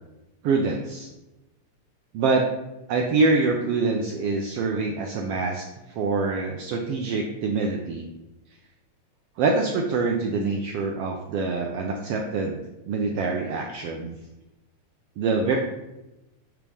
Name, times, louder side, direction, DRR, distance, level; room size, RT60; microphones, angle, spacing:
voice 1, 0.4-1.1 2.1-2.4 2.9-8.1 9.4-12.6 12.8-14.1 15.2-15.6, right 3 dB, 75° right, 2 dB, 1.4 m, -25 dB
7.0 x 3.5 x 6.1 m, 1.0 s
omnidirectional pair, 3.3 m